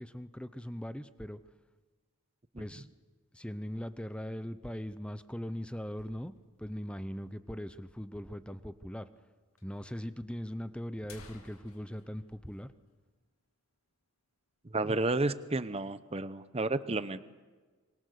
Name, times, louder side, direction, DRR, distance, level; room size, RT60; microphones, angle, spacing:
voice 1, 0.0-1.4 2.6-2.9 3.3-6.3 6.6-9.1 9.6-12.7, equal, 5° left, 13 dB, 0.7 m, -40 dB
sound 1, 5.3-6.7 7.0-7.1 7.3-7.4 8.1-8.2 9.1-9.2 9.6-9.7 10.4-10.5 10.9-13.5 13.8-13.9 14.3-14.6 15.0-15.6, left 3 dB, 75° left, 2.6 m, -57 dB
voice 2, 14.7-17.2, right 2 dB, 25° right, 13 dB, 0.8 m, -31 dB
25.5 x 23.5 x 6.6 m, 1.4 s
head